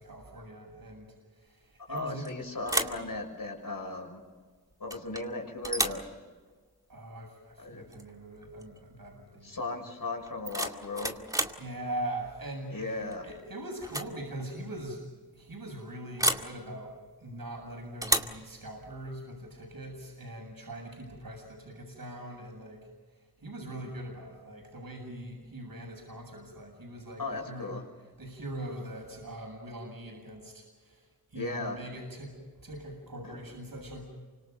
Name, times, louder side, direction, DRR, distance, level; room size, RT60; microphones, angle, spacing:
voice 1, 0.0-2.3 6.9-9.6 11.6-15.0 15.3-22.9 23.4-27.7 28.2-32.4 32.6-34.0, right 1 dB, 60° right, 0 dB, 7.6 m, -42 dB
voice 2, 1.8-4.2 4.8-6.1 7.6-7.8 9.4-11.2 12.7-13.3 27.2-27.9 31.3-31.8 33.2-33.4, left 2 dB, 60° left, 2 dB, 6.6 m, -37 dB
sound 1, 2.0-2.3 2.6-3.1 4.9-5.3 5.6-6.1 7.9-8.1 8.4-8.8 10.2-11.6 13.1-13.4 13.8-14.1 14.4-14.5 16.2-16.5 18.0-18.4, right 1 dB, 10° right, 2.2 m, -31 dB
28.5 x 26.0 x 5.5 m, 1.5 s
cardioid pair, 40°, 39 cm